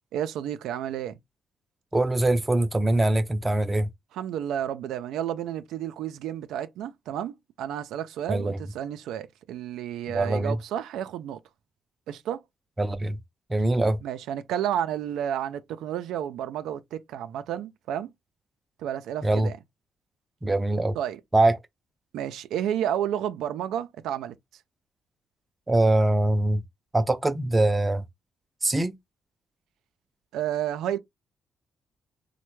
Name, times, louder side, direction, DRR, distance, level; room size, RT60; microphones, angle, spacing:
voice 1, 0.1-1.2 4.1-11.4 12.1-12.4 14.0-18.1 18.8-19.6 20.9-21.2 22.1-24.3 30.3-31.0, right 10 dB, 85° right, 0.3 m, -31 dB
voice 2, 1.9-3.9 8.3-8.6 10.1-10.6 12.8-13.2 13.5-14.0 19.2-19.5 20.4-21.0 21.3-21.6 25.7-26.6 26.9-28.0 28.6-28.9, right 2 dB, 15° right, 0.5 m, -23 dB
3.2 x 2.1 x 3.0 m
cardioid pair, 90°, 0 cm